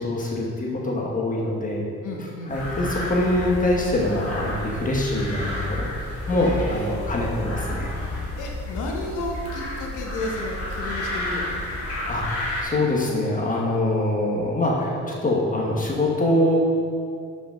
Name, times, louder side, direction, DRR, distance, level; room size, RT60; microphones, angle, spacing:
voice 1, 0.0-1.9 2.2-5.9 6.3-7.9 12.1-16.6, left 1 dB, 25° left, -2 dB, 1.6 m, -24 dB
voice 2, 2.0-2.6 6.8-11.6, left 2 dB, 85° left, 0 dB, 1.3 m, -33 dB
sound 1, 2.5-12.6, left 1 dB, 50° left, 1.9 m, -31 dB
6.0 x 5.3 x 5.1 m, 2.3 s
cardioid pair, 90°, 30 cm